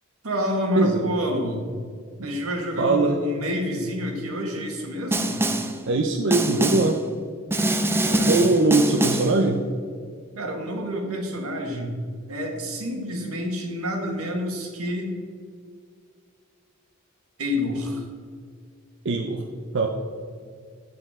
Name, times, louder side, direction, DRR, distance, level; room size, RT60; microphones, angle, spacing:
voice 1, 0.2-1.6 2.2-5.4 8.0-8.3 10.3-11.9 12.3-15.1 17.4-18.1, equal, 85° right, 2 dB, 1.6 m, -28 dB
voice 2, 0.8-1.1 2.2-2.3 2.8-3.2 5.9-7.0 8.3-9.6 19.0-19.4 19.7-19.9, right 2 dB, 60° right, 3 dB, 0.6 m, -21 dB
Snare drum, 5.1-5.8 6.3-7.0 7.5-9.4, right 1 dB, 10° right, 0.4 m, -24 dB
9.1 x 7.9 x 3.6 m, 2.1 s
head